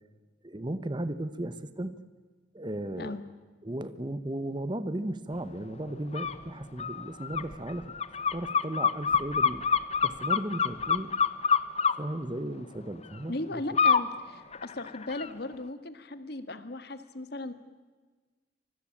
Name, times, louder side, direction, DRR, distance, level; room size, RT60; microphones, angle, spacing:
voice 1, 0.4-1.9 2.5-3.2 3.6-7.9 8.3-11.1 12.0-13.6, right 1 dB, 25° right, 14 dB, 1.0 m, -35 dB
sound 1, 6.1-6.3 6.8-11.9 13.8-14.1 14.5-15.3, left 6 dB, 35° left, 0.9 m, -26 dB
voice 2, 13.3-17.5, left 2 dB, 55° left, 11 dB, 1.6 m, -37 dB
25.0 x 21.0 x 8.7 m, 1.4 s
head